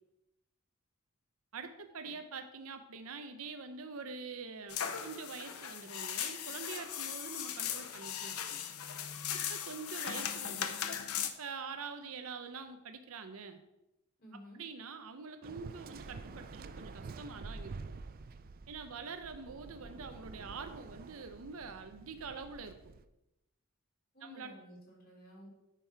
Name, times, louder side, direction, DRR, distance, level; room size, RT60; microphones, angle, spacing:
voice 1, 1.5-8.4 9.3-10.8 11.4-13.6 14.3-18.0 18.7-22.8 24.2-24.6, right 5 dB, 70° right, 8 dB, 0.7 m, -45 dB
sound 1, 4.7-11.3, left 9 dB, 80° left, 0.8 m, -38 dB
voice 2, 14.2-14.6 24.1-25.5, equal, 45° left, -4 dB, 3.8 m, -53 dB
Waves surf, 15.4-23.0, right 4 dB, 40° right, 0.4 m, -48 dB
9.0 x 6.1 x 4.6 m, 0.92 s
head